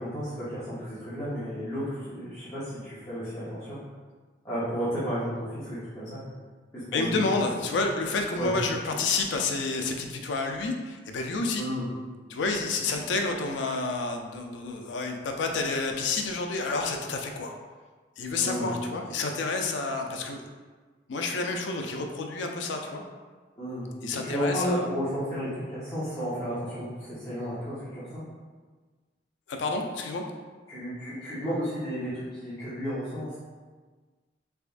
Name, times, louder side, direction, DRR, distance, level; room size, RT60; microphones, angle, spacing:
voice 1, 0.0-3.8 4.4-6.2 6.7-7.2 8.4-8.5 11.6-11.9 18.4-18.7 23.6-23.9 24.2-28.2 30.7-33.4, equal, 20° left, -14 dB, 1.1 m, -32 dB
voice 2, 6.9-11.6 12.3-17.6 18.2-20.5 21.1-23.0 24.0-24.9 29.5-30.2, left 3 dB, 85° left, 3 dB, 0.4 m, -29 dB
3.5 x 3.2 x 2.5 m, 1.4 s
head